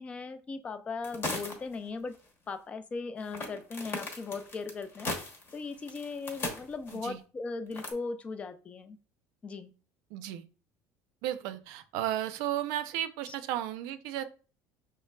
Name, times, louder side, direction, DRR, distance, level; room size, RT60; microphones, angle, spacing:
voice 1, 0.0-2.2 2.5-5.3 5.5-9.0 9.4-9.7 13.3-13.4, left 4 dB, 20° left, 10 dB, 0.3 m, -38 dB
sound 1, 1.0-1.8 2.0-2.1 3.3-7.1 7.7-7.9, left 2 dB, 35° left, 1.0 m, -37 dB
voice 2, 10.1-10.4 11.2-14.2, right 12 dB, 70° right, 10 dB, 0.5 m, -34 dB
5.7 x 3.1 x 2.2 m, 0.37 s
cardioid pair, 160°, 6 cm